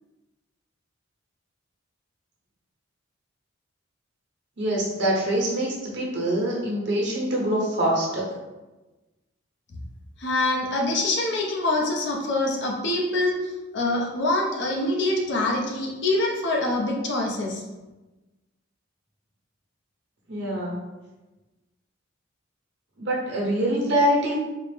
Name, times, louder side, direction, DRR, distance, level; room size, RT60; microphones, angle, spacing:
voice 1, 4.6-8.3 20.3-20.8 23.0-24.3, right 1 dB, 60° right, -3 dB, 1.0 m, -24 dB
voice 2, 10.2-17.6, left 2 dB, 60° left, -1 dB, 0.6 m, -25 dB
4.2 x 2.0 x 3.4 m, 1.1 s
head